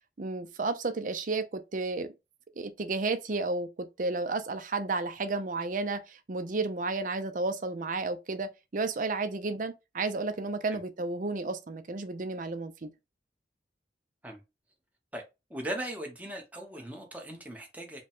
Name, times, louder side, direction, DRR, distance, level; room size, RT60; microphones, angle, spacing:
voice 1, 0.2-2.1 2.6-12.9, right 3 dB, 50° right, 0.6 m, -32 dB
voice 2, 15.5-18.0, right 1 dB, 10° right, 0.9 m, -38 dB
5.0 x 2.2 x 3.6 m
head